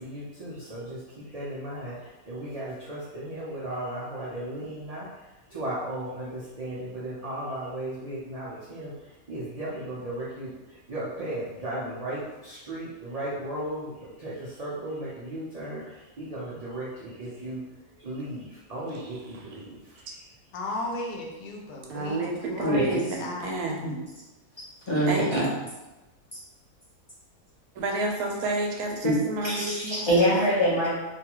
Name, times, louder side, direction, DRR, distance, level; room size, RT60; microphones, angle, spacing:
voice 1, 0.0-5.1 5.5-17.7 18.0-20.3, right 1 dB, 70° right, -8 dB, 0.3 m, -36 dB
voice 2, 20.5-22.9 23.2-23.6, left 2 dB, 85° left, -1 dB, 1.1 m, -35 dB
voice 3, 21.9-24.0 25.0-25.5 27.8-30.1, right 2 dB, 85° right, 0 dB, 1.1 m, -30 dB
voice 4, 22.6-23.0 23.8-23.9 24.9-25.4 29.0-29.1 29.4-31.0, equal, 30° left, -9 dB, 0.6 m, -24 dB
2.7 x 2.3 x 2.9 m, 1.1 s
omnidirectional pair, 1.5 m